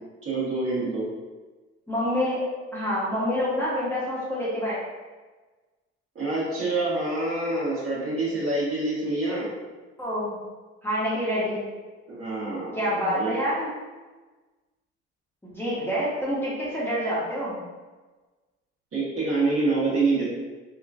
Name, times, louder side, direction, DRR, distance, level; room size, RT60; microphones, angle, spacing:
voice 1, 0.2-1.1 6.1-9.5 12.1-12.8 13.1-13.3 18.9-20.2, right 2 dB, 45° right, -8 dB, 1.4 m, -26 dB
voice 2, 1.9-2.4 2.7-4.8 10.0-10.4 10.8-11.6 12.7-13.7 15.5-17.6, equal, 5° left, -8 dB, 0.9 m, -27 dB
2.9 x 2.3 x 2.4 m, 1.3 s
hypercardioid pair, 60°, 31 cm